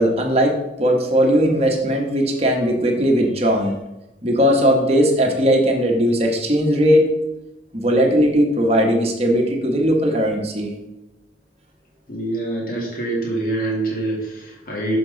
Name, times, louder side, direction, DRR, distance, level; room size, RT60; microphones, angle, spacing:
voice 1, 0.0-3.8 4.2-7.1 7.7-10.8, equal, 35° right, 1 dB, 1.2 m, -18 dB
voice 2, 12.1-15.0, right 2 dB, 50° left, -2 dB, 1.9 m, -25 dB
6.9 x 6.0 x 4.0 m, 0.94 s
head